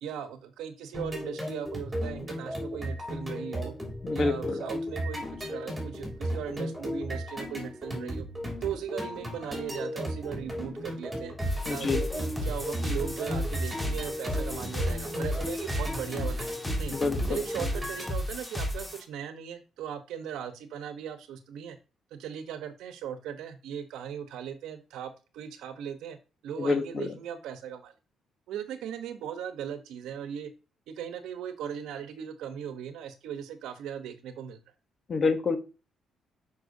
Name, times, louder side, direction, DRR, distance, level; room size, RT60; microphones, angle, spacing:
voice 1, 0.0-3.7 4.1-8.3 8.6-11.3 11.7-16.5 16.8-17.0 17.3-21.8 22.1-26.2 26.4-27.9 28.5-30.5 30.9-34.6, right 9 dB, 85° right, 10 dB, 0.9 m, -38 dB
sound 1, 0.9-18.1, equal, 5° right, 3.0 m, -35 dB
voice 2, 4.0-4.6 11.7-12.1 16.9-17.4 26.6-27.1 35.1-35.6, left 4 dB, 40° left, 9 dB, 1.0 m, -27 dB
sound 2, 11.4-19.0, left 1 dB, 10° left, 1.6 m, -33 dB
6.3 x 5.5 x 2.7 m, 0.31 s
cardioid pair, 90°, 0 cm